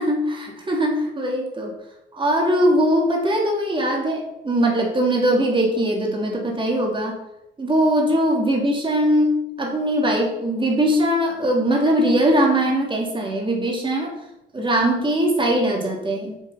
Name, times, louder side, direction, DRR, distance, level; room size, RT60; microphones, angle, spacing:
voice 1, 0.0-1.7 2.1-7.2 7.6-14.1 14.5-16.4, right 1 dB, 25° right, 0 dB, 3.2 m, -21 dB
7.8 x 7.3 x 5.9 m, 0.84 s
cardioid pair, 90°, 20 cm